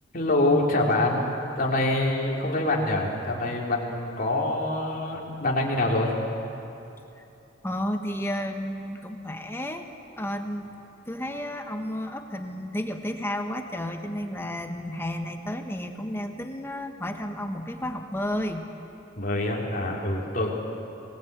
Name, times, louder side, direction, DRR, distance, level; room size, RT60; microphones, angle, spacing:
voice 1, 0.1-1.3 1.6-6.1 19.2-20.5, left 2 dB, 45° left, -2 dB, 3.5 m, -25 dB
voice 2, 7.6-9.9 10.2-10.7 11.1-18.7, left 1 dB, 10° left, 4 dB, 1.3 m, -32 dB
25.0 x 19.5 x 8.2 m, 2.8 s
head